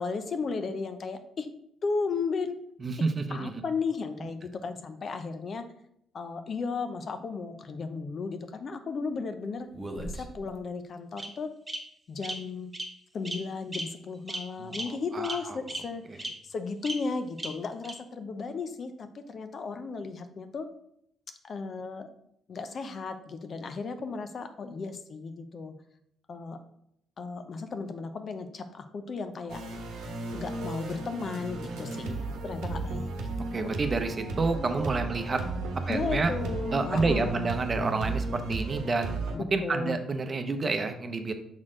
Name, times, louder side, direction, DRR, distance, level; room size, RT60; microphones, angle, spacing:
voice 1, 0.0-1.5 1.8-2.6 3.3-5.7 6.1-9.7 10.0-11.5 12.1-12.7 13.1-20.7 21.4-22.1 22.5-25.8 26.3-26.6 27.2-29.6 30.3-33.1 33.6-33.7 35.9-37.6 39.3-40.0, left 4 dB, 50° left, 9 dB, 0.6 m, -35 dB
voice 2, 2.8-3.6 14.6-15.6 31.9-32.1 33.5-35.4 35.9-36.3 36.7-39.2 39.5-41.3, right 3 dB, 35° right, 7 dB, 0.7 m, -29 dB
Bird vocalization bird call bird song, 9.7-10.5 11.2-11.3 11.7-11.8 12.2-12.3 12.7-12.9 13.2-13.4 13.7-13.8 14.3-14.4 14.7-14.8 15.2-15.3 15.7-15.8 16.2-16.3 16.8-16.9 17.4-17.5 17.8-17.9, right 2 dB, 15° right, 1.1 m, -35 dB
sound 1, 29.5-39.4, right 3 dB, 90° right, 1.1 m, -34 dB
6.2 x 4.3 x 3.7 m, 0.72 s
cardioid pair, 90°, 0 cm